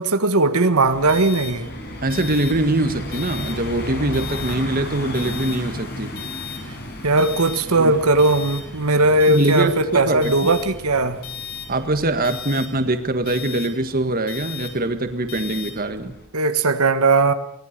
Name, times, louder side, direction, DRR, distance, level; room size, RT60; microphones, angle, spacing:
voice 1, 0.0-1.7 7.0-11.2 16.3-17.3, right 2 dB, 85° right, 1.5 m, -18 dB
sound 1, 0.7-16.3, left 3 dB, 50° left, 6.2 m, -34 dB
voice 2, 2.0-6.1 7.8-7.9 9.3-10.5 11.7-16.1, right 2 dB, 40° right, 1.7 m, -23 dB
24.0 x 19.0 x 6.8 m
head